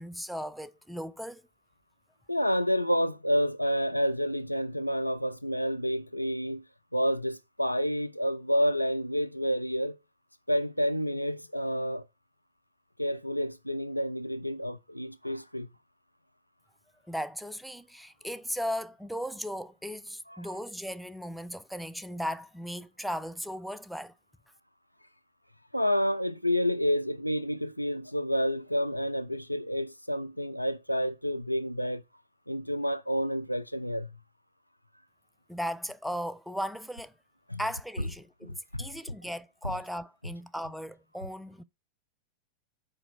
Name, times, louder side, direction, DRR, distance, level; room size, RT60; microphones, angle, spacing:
voice 1, 0.0-1.4 17.1-24.1 35.5-37.1 37.6-41.6, equal, ahead, 0.4 m, -37 dB
voice 2, 2.3-6.6 6.9-10.0 10.5-12.0 13.0-15.7 20.3-20.4 25.7-32.0 32.5-34.1 37.5-37.6 38.4-38.9, equal, 90° left, 0.3 m, -29 dB
4.9 x 4.3 x 4.9 m
figure-of-eight pair, 90°, 0 cm